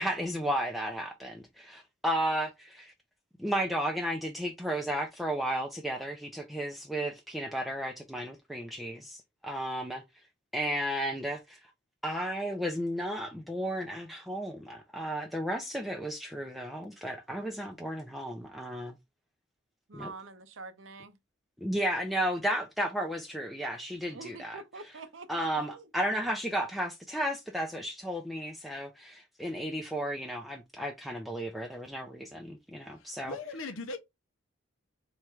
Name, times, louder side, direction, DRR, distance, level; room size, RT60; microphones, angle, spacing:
voice 1, 0.0-2.9 3.4-10.0 10.5-11.6 12.0-19.0 19.9-20.1 21.6-24.6 25.3-33.4, equal, ahead, 0.4 m, -33 dB
voice 2, 19.9-21.2 24.1-25.9, right 3 dB, 75° right, 0.7 m, -46 dB
voice 3, 32.9-34.0, left 3 dB, 85° left, 0.7 m, -39 dB
3.5 x 3.1 x 4.4 m
head